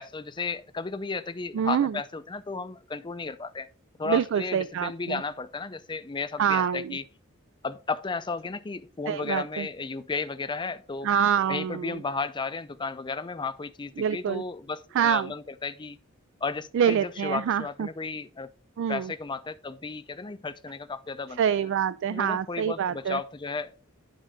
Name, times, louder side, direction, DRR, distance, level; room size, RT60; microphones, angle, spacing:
voice 1, 0.0-3.7 4.0-7.0 7.6-11.1 11.5-16.0 16.4-18.5 18.9-21.4 22.1-23.8, left 4 dB, 20° left, 0.5 m, -34 dB
voice 2, 1.5-2.0 4.0-5.2 6.4-7.0 9.1-9.7 11.0-12.0 14.0-14.4 14.9-15.3 16.7-17.9 18.8-19.1 21.4-23.2, right 8 dB, 60° right, 0.3 m, -26 dB
11.0 x 3.8 x 5.0 m
head